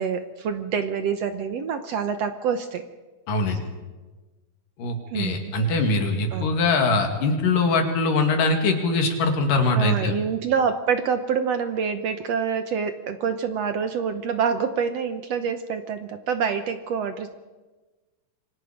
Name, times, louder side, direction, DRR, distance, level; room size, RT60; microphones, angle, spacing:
voice 1, 0.0-2.8 3.5-3.6 5.1-5.5 6.3-6.6 9.8-17.3, right 6 dB, 65° right, 8 dB, 1.8 m, -26 dB
voice 2, 3.3-3.6 4.8-10.1, left 3 dB, 80° left, 4 dB, 4.0 m, -22 dB
27.0 x 24.0 x 5.2 m, 1.2 s
omnidirectional pair, 3.8 m